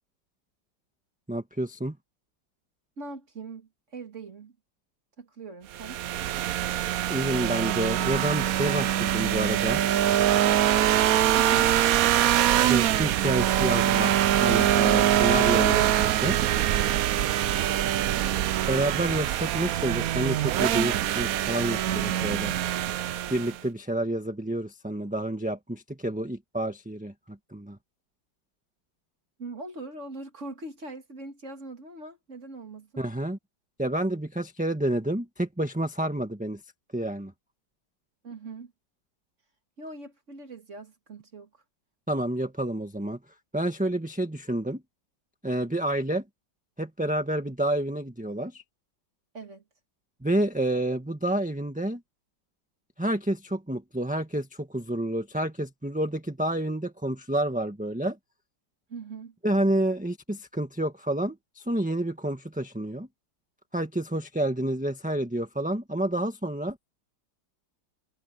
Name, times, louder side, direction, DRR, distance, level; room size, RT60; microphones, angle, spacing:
voice 1, 1.3-2.0 7.1-9.8 12.6-16.4 18.7-22.6 23.3-27.8 33.0-33.4 33.8-36.6 36.9-37.3 42.1-43.2 43.5-44.8 45.4-46.2 46.8-48.6 50.2-52.0 53.0-58.2 59.4-63.1 63.7-66.8, right 1 dB, 5° right, 1.2 m, -29 dB
voice 2, 3.0-4.5 5.2-6.0 11.4-11.7 29.4-33.0 38.2-38.7 39.8-41.6 49.3-49.6 58.9-59.3, right 3 dB, 40° right, 2.4 m, -41 dB
sound 1, 5.7-23.6, right 12 dB, 75° right, 0.8 m, -24 dB
omnidirectional pair, 2.1 m